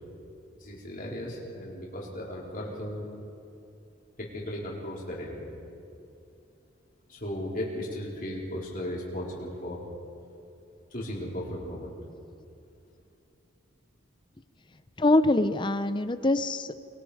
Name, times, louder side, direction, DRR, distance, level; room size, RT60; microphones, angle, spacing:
voice 1, 0.6-3.1 4.2-5.5 7.1-9.8 10.9-11.9, left 1 dB, 40° left, -4 dB, 4.2 m, -36 dB
voice 2, 15.0-16.7, left 2 dB, 25° left, 12 dB, 0.6 m, -24 dB
25.0 x 22.5 x 5.0 m, 2.6 s
head